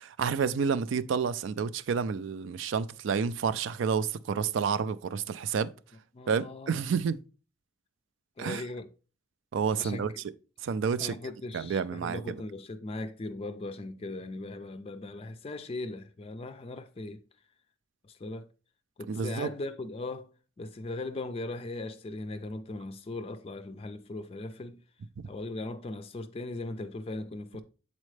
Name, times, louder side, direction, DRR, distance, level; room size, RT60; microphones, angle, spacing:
voice 1, 0.0-5.7 6.3-7.2 8.4-8.6 9.5-10.1 10.6-11.2 11.5-12.4 19.1-19.5 25.2-25.3, right 6 dB, 70° right, 0.4 m, -29 dB
voice 2, 6.1-6.8 8.4-8.9 9.8-10.1 11.0-17.2 18.0-18.5 19.0-20.3 20.6-24.8 25.3-27.6, left 2 dB, 30° left, 0.4 m, -39 dB
7.3 x 4.2 x 3.2 m
head